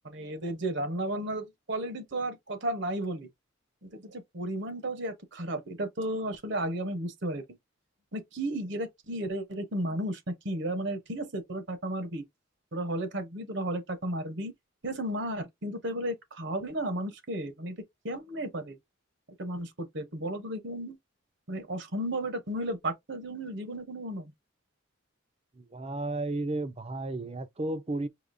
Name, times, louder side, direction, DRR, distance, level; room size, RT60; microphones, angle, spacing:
voice 1, 0.0-3.3 3.8-7.4 8.1-12.2 12.7-14.5 14.8-17.8 18.0-18.8 19.4-21.0 21.5-24.3, right 1 dB, 60° right, 1.0 m, -33 dB
voice 2, 25.6-28.1, right 2 dB, 30° right, 0.6 m, -33 dB
5.0 x 2.8 x 2.6 m
head